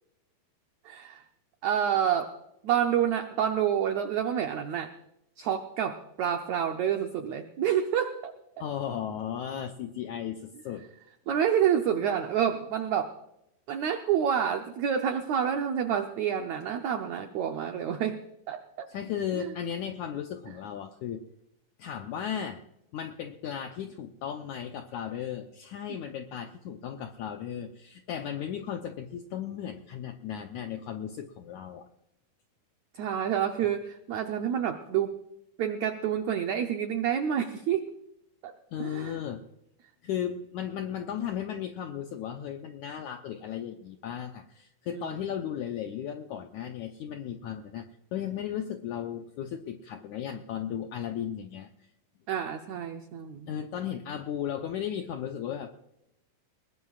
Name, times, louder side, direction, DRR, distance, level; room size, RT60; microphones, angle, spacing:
voice 1, 0.8-1.2 1.6-2.3 2.6-4.9 5.4-8.3 11.3-13.1 13.7-18.9 19.3-19.5 32.9-35.2 35.6-37.9 38.4-38.5 38.8-39.2 44.9-45.1 52.3-53.5, right 9 dB, 85° right, 6 dB, 1.6 m, -28 dB
voice 2, 8.6-10.9 18.9-21.2 21.8-22.6 22.9-31.9 38.7-39.4 40.0-51.7 53.5-55.7, left 9 dB, 80° left, 5 dB, 1.7 m, -35 dB
21.0 x 20.5 x 2.4 m, 0.83 s
omnidirectional pair, 4.4 m